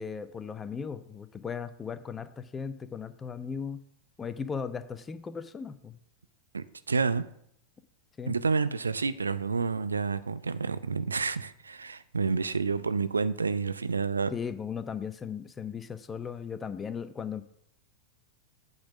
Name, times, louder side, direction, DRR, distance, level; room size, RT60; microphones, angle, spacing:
voice 1, 0.0-3.8 4.2-6.0 8.2-8.3 14.3-17.4, left 6 dB, 20° left, 0.5 m, -37 dB
voice 2, 6.5-7.2 8.3-14.3, right 4 dB, 75° right, 0.3 m, -29 dB
8.7 x 4.0 x 6.1 m
figure-of-eight pair, 90°, 0 cm